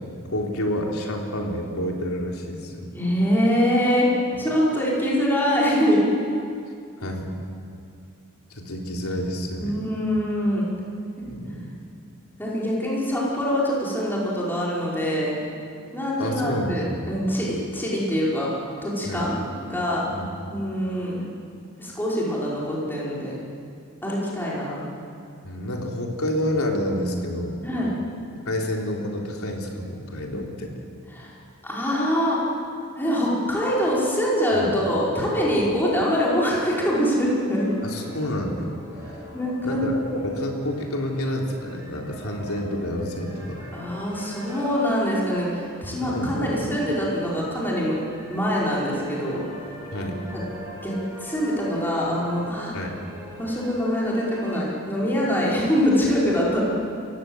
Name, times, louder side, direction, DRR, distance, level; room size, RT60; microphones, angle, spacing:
voice 1, 0.3-2.9 7.0-7.3 8.5-9.8 11.2-11.7 16.2-17.2 19.0-19.3 20.1-20.3 25.4-27.6 28.5-30.7 34.5-34.7 37.8-38.7 39.6-43.6 46.0-46.8 49.9-50.2 52.7-53.0, left 1 dB, 85° left, 0 dB, 3.7 m, -29 dB
voice 2, 2.9-4.1 4.4-6.0 9.6-10.7 12.4-15.4 15.9-18.5 18.8-20.1 20.5-21.2 21.8-23.4 24.0-24.9 27.6-27.9 31.1-31.3 31.6-32.4 33.0-37.7 39.3-39.9 43.7-48.0 48.3-49.4 50.3-50.4 50.8-50.9 51.2-52.8 53.4-56.6, equal, 10° left, -6 dB, 5.1 m, -24 dB
sound 1, 36.3-54.6, equal, 15° right, 6.5 m, -43 dB
28.5 x 16.5 x 8.0 m, 2.4 s
head